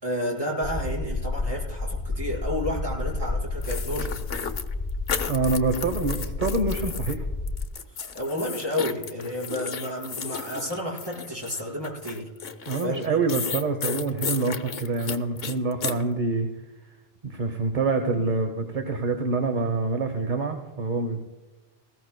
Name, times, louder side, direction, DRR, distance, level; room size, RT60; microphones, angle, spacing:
voice 1, 0.0-4.2 8.1-12.3 12.8-13.2 18.2-18.4, equal, 20° right, -4 dB, 5.0 m, -31 dB
sound 1, 0.6-7.7, left 3 dB, 30° left, 0.4 m, -31 dB
sound 2, 3.6-7.1 7.5-16.0, left 6 dB, 60° left, 1.0 m, -33 dB
voice 2, 5.3-7.3 12.6-16.5 17.2-21.2, right 3 dB, 45° right, 6 dB, 1.2 m, -26 dB
20.0 x 16.0 x 2.2 m, 1.2 s
omnidirectional pair, 1.1 m